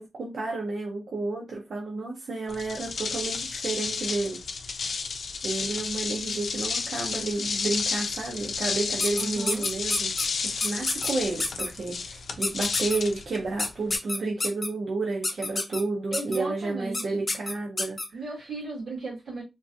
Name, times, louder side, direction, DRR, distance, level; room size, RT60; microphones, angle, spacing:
voice 1, 0.0-4.4 5.4-18.0, right 3 dB, 60° right, 0.7 m, -31 dB
sound 1, 2.5-14.0, left 5 dB, 80° left, 0.5 m, -32 dB
sound 2, 9.0-10.3 10.6-11.1 11.4-11.7 12.4-13.0 13.6-14.7 15.2-15.8 16.1-16.4 16.9-17.0 17.3-18.1, left 2 dB, 30° left, 0.7 m, -28 dB
voice 2, 9.2-9.7 16.1-17.3 18.1-19.4, right 3 dB, 80° right, 2.0 m, -36 dB
3.7 x 2.5 x 2.6 m
wide cardioid pair, 160°, 0 cm